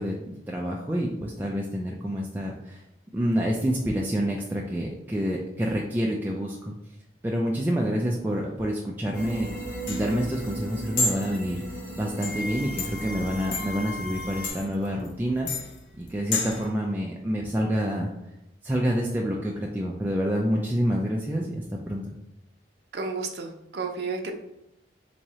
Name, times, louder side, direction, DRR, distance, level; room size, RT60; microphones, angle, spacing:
voice 1, 0.0-2.8 3.1-6.7 7.2-9.5 9.9-11.6 12.0-15.5 16.0-18.1 18.6-22.0, equal, 10° right, -2 dB, 0.3 m, -28 dB
sound 1, 9.1-14.5, equal, 20° left, 1.3 m, -36 dB
sound 2, 9.4-16.7, left 3 dB, 90° left, 0.6 m, -33 dB
voice 2, 22.9-24.3, right 4 dB, 65° right, 2 dB, 0.6 m, -32 dB
3.5 x 3.0 x 2.8 m, 0.87 s
head